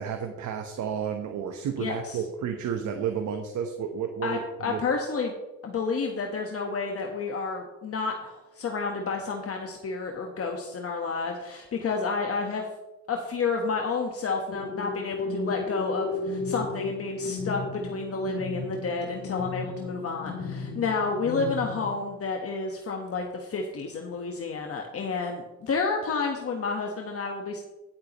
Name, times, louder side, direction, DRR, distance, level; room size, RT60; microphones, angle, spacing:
voice 1, 0.0-4.8, right 7 dB, 75° right, 5 dB, 1.1 m, -31 dB
voice 2, 1.8-2.2 4.2-5.3 5.6-12.6 13.1-27.6, left 4 dB, 50° left, 2 dB, 1.3 m, -30 dB
sound 1, 14.5-21.9, left 3 dB, 70° left, 3.1 m, -34 dB
15.5 x 8.6 x 3.1 m, 1.1 s
cardioid pair, 90°, 30 cm